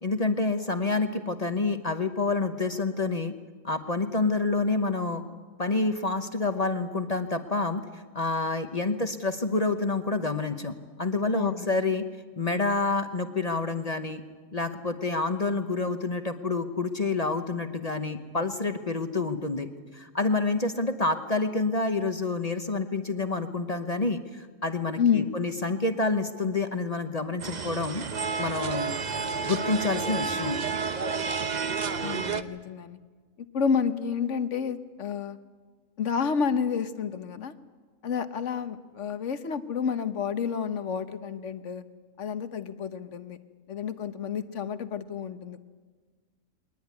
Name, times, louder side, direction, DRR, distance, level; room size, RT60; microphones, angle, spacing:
voice 1, 0.0-3.3 3.6-5.2 5.6-10.7 11.0-12.1 12.4-14.2 14.5-19.7 19.9-28.0 28.4-28.9 29.4-30.6, left 3 dB, 30° left, 8 dB, 1.0 m, -28 dB
voice 2, 11.3-11.7 25.0-25.3 32.0-33.0 33.5-35.4 36.0-37.5 38.0-41.8 42.2-43.4 43.7-45.6, left 6 dB, 60° left, 11 dB, 1.2 m, -29 dB
sound 1, 27.4-32.4, right 5 dB, 40° right, 0.7 m, -30 dB
22.0 x 19.0 x 9.6 m, 1.4 s
omnidirectional pair, 1.5 m